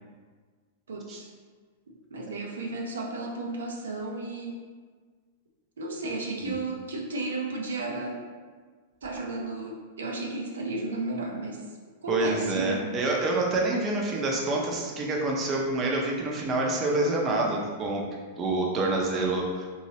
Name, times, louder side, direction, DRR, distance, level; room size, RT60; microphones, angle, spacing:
voice 1, 0.9-1.3 1.9-4.6 5.8-8.3 9.0-11.7 12.0-12.9, right 2 dB, 85° right, 0 dB, 0.5 m, -33 dB
voice 2, 12.1-18.1 18.4-19.8, right 2 dB, 30° right, -1 dB, 0.6 m, -27 dB
2.9 x 2.7 x 2.8 m, 1.5 s
hypercardioid pair, 115°, 0 cm